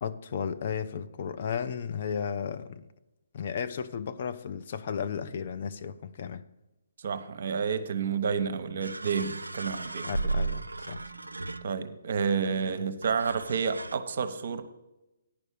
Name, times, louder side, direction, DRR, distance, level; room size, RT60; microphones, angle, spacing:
voice 1, 0.0-2.9 3.3-6.5 10.0-11.0, left 7 dB, 45° left, 0.5 m, -34 dB
voice 2, 7.0-10.1 11.6-14.6, right 6 dB, 50° right, 0.8 m, -30 dB
sound 1, 8.8-12.1 13.0-13.9, right 3 dB, 80° right, 0.4 m, -35 dB
10.0 x 5.4 x 6.6 m
figure-of-eight pair, 135°, 0 cm